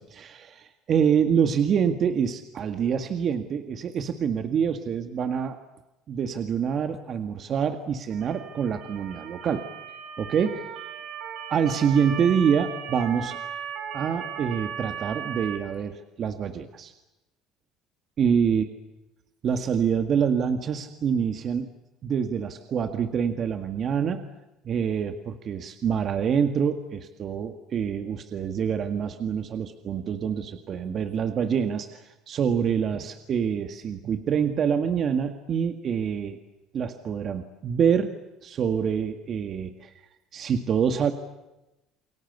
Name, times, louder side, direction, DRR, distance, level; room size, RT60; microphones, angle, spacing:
voice 1, 0.0-5.6 6.1-9.6 10.2-10.6 11.5-13.4 13.9-16.9 18.2-18.6 19.4-21.7 22.0-24.3 24.7-36.4 36.7-38.1 38.4-39.9 40.3-41.1, right 7 dB, 45° right, 7 dB, 1.9 m, -26 dB
Motor vehicle (road) / Siren, 8.1-15.6, right 7 dB, 75° right, 4.8 m, -37 dB
29.5 x 22.5 x 8.2 m, 0.97 s
cardioid pair, 110°, 0 cm